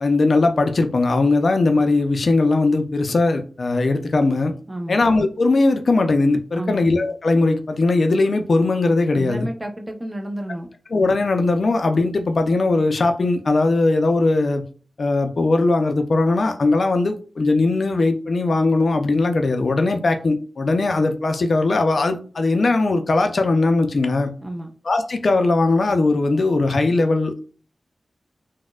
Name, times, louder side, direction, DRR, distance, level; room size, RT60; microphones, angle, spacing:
voice 1, 0.0-4.5 4.9-9.5 10.9-14.6 15.0-24.3 24.8-27.4, left 3 dB, 65° left, 7 dB, 0.4 m, -19 dB
voice 2, 4.7-5.0 6.5-6.8 9.1-10.7 24.4-24.7, right 1 dB, 25° right, 4 dB, 0.6 m, -30 dB
4.1 x 2.1 x 2.3 m, 0.39 s
cardioid pair, 60°, 0 cm